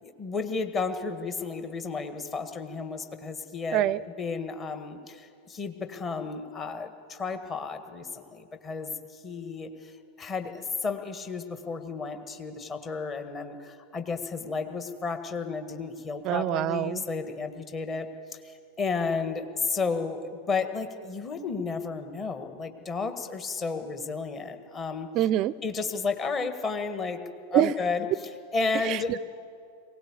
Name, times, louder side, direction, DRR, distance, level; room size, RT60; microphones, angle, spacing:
voice 1, 0.0-9.9 10.2-18.4 18.8-25.1 25.6-27.2 27.5-28.0 28.5-29.2, left 4 dB, 25° left, 7 dB, 1.7 m, -32 dB
voice 2, 16.2-17.0 25.1-25.5 27.5-27.7 28.9-29.0, right 13 dB, 40° right, 21 dB, 0.5 m, -24 dB
21.0 x 18.0 x 8.3 m, 2.4 s
figure-of-eight pair, 90°, 0 cm